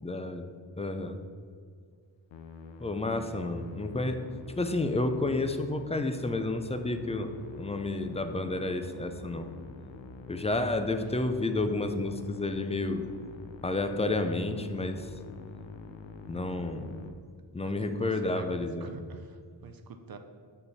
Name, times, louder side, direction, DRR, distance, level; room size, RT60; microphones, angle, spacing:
voice 1, 0.0-0.5 0.8-1.2 2.8-4.3 4.6-7.3 7.6-9.5 10.3-13.0 13.6-15.1 16.3-17.0 17.5-19.0, left 2 dB, 15° left, 7 dB, 0.4 m, -30 dB
Musical instrument, 2.3-17.1, left 5 dB, 70° left, 0.7 m, -46 dB
voice 2, 17.6-20.2, right 5 dB, 50° right, 7 dB, 0.6 m, -48 dB
6.5 x 5.6 x 4.0 m, 2.1 s
wide cardioid pair, 110°, 46 cm